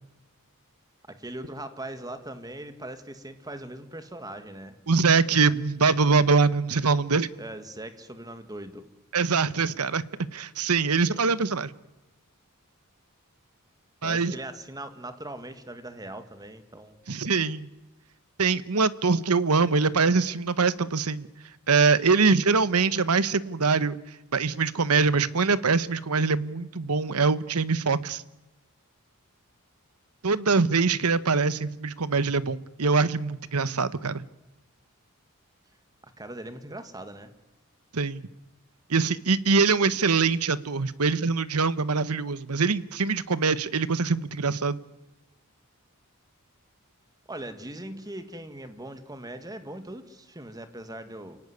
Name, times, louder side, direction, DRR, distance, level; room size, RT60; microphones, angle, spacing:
voice 1, 1.1-4.8 7.4-8.9 11.1-11.4 14.0-17.0 36.0-37.3 47.3-51.4, right 1 dB, 15° right, 9 dB, 1.9 m, -40 dB
voice 2, 4.9-7.3 9.1-10.0 10.3-11.7 14.0-14.3 17.1-17.7 18.4-21.3 21.7-24.0 24.3-28.2 30.2-34.2 37.9-38.3 38.9-44.8, right 4 dB, 85° right, 15 dB, 1.1 m, -23 dB
29.0 x 17.5 x 9.7 m, 1.0 s
head